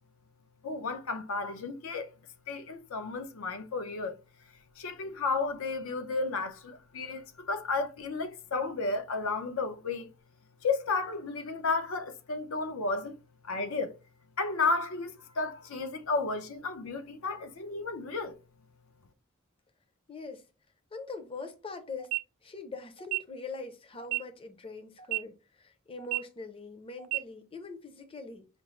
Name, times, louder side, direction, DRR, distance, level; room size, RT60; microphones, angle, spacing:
voice 1, 0.6-2.1 2.5-4.2 4.8-10.1 10.6-13.1 13.4-13.9 14.4-18.3, left 3 dB, 85° left, 0.6 m, -32 dB
voice 2, 20.1-20.5 20.9-22.1 22.4-28.5, left 3 dB, 25° left, 0.5 m, -42 dB
sound 1, 22.0-22.2 23.0-23.2 24.0-24.2 25.0-25.2 26.0-26.2 27.0-27.2, right 23 dB, 80° right, 0.4 m, -31 dB
5.1 x 2.0 x 3.0 m
head